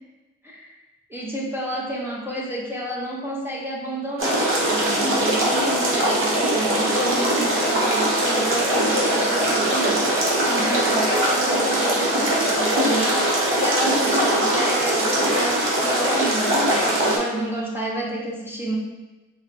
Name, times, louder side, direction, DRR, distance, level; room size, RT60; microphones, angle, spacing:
voice 1, 1.1-10.1 10.5-13.3 13.5-18.8, right 1 dB, 5° right, -5 dB, 0.6 m, -29 dB
sound 1, 4.2-17.2, right 1 dB, 45° right, 0.9 m, -21 dB
4.2 x 2.1 x 2.5 m, 1.1 s
cardioid pair, 90°, 30 cm